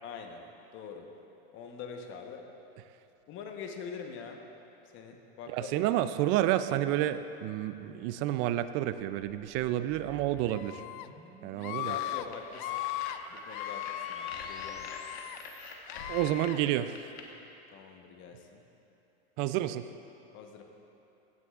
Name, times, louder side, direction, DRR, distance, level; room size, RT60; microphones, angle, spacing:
voice 1, 0.0-0.4 0.7-1.1 1.5-2.5 3.3-4.4 4.9-5.7 11.8-12.8 13.3-14.9 17.7-18.6 20.3-20.6, left 6 dB, 40° left, 4 dB, 1.0 m, -44 dB
voice 2, 5.5-10.8 11.4-12.0 16.1-17.1 19.4-19.8, right 13 dB, 40° right, 12 dB, 0.4 m, -30 dB
sound 1, 9.1-15.8, right 1 dB, ahead, 1.1 m, -54 dB
Screaming, 10.5-11.1 11.6-12.3 12.5-13.2 13.5-15.4 15.9-16.6, left 14 dB, 55° left, 0.4 m, -37 dB
sound 2, 12.0-17.2, left 4 dB, 80° left, 1.3 m, -46 dB
15.0 x 9.6 x 2.4 m, 3.0 s
supercardioid pair, 125°, 31 cm